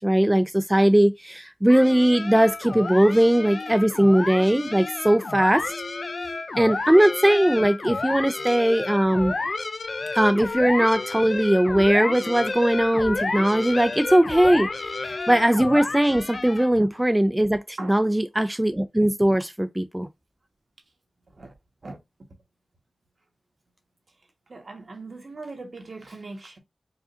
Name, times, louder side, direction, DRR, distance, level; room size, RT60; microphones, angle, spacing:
voice 1, 0.0-5.7 6.6-9.3 10.1-20.1, right 1 dB, 15° right, 0.4 m, -20 dB
sound 1, 1.7-16.8, left 3 dB, 60° left, 0.4 m, -31 dB
voice 2, 24.5-26.6, right 3 dB, 65° right, 1.3 m, -40 dB
4.8 x 2.6 x 2.5 m
cardioid pair, 50°, 0 cm